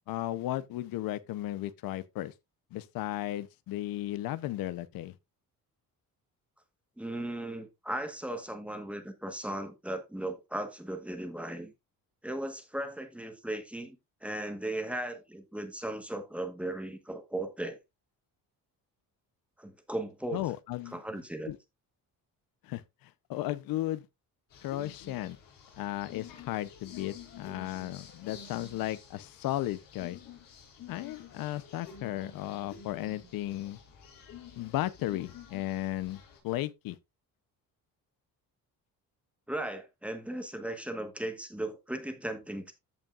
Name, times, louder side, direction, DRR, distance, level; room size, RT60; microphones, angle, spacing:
voice 1, 0.1-2.3 2.7-5.2 20.3-21.0 21.5-21.6 22.6-24.0 24.6-25.4 25.8-30.2 30.9-33.8 34.6-37.0, left 14 dB, 90° left, 0.7 m, -35 dB
voice 2, 7.0-11.7 12.2-14.0 14.2-17.8 19.6-20.4 20.9-21.5 39.5-42.7, right 1 dB, 5° right, 1.2 m, -37 dB
sound 1, 24.5-36.4, left 7 dB, 70° left, 4.9 m, -50 dB
14.5 x 5.4 x 2.4 m
cardioid pair, 165°, 34 cm